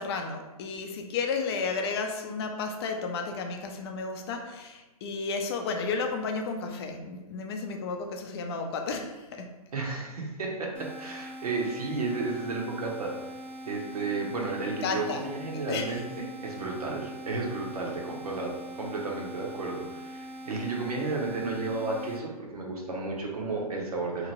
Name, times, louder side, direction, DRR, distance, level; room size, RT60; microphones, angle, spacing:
voice 1, 0.0-9.5 14.8-15.2 15.7-15.9, left 4 dB, 40° left, 4 dB, 0.4 m, -32 dB
voice 2, 9.7-13.1 13.7-24.3, right 3 dB, 80° right, -1 dB, 0.8 m, -33 dB
sound 1, 10.7-22.2, equal, 10° right, 0.5 m, -42 dB
2.8 x 2.5 x 2.9 m, 1.1 s
hypercardioid pair, 135°, 19 cm